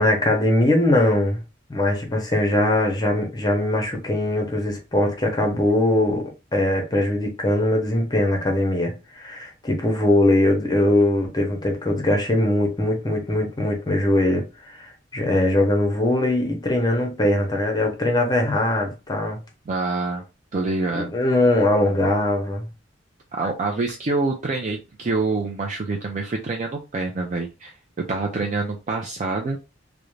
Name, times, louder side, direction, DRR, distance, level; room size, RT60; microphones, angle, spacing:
voice 1, 0.0-1.4 1.7-19.4 20.9-22.7, left 1 dB, 20° left, 0.7 m, -21 dB
voice 2, 19.7-20.2 20.5-21.2 23.3-27.7 28.1-29.6, right 3 dB, 40° right, 0.4 m, -26 dB
2.5 x 2.1 x 3.1 m
head